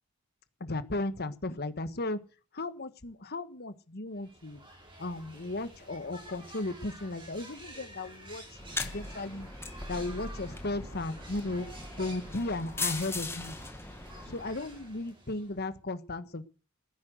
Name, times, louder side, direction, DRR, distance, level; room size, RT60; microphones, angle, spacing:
voice 1, 0.6-2.2 2.5-4.6 5.0-9.5 9.9-11.7 12.0-13.5 14.2-16.4, left 2 dB, 45° left, 12 dB, 1.4 m, -35 dB
sound 1, 4.1-15.8, right 1 dB, 20° right, 4.3 m, -50 dB
sound 2, 8.5-14.9, left 3 dB, 10° left, 1.3 m, -39 dB
16.0 x 9.9 x 8.0 m, 0.38 s
head